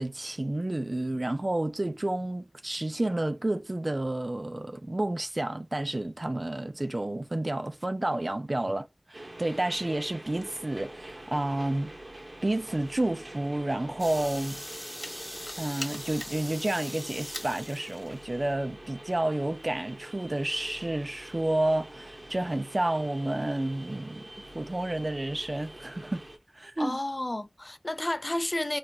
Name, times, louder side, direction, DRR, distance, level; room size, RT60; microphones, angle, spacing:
voice 1, 0.0-11.9 12.4-14.6 15.6-24.2 24.5-26.2 26.5-27.0, right 1 dB, 55° right, 0.4 m, -30 dB
sound 1, 9.1-26.4, right 1 dB, 75° right, 0.9 m, -45 dB
sound 2, 14.0-18.3, equal, 10° left, 1.3 m, -40 dB
voice 2, 26.8-28.8, left 1 dB, 50° left, 0.5 m, -31 dB
4.6 x 2.5 x 2.8 m
wide cardioid pair, 45°, 0 cm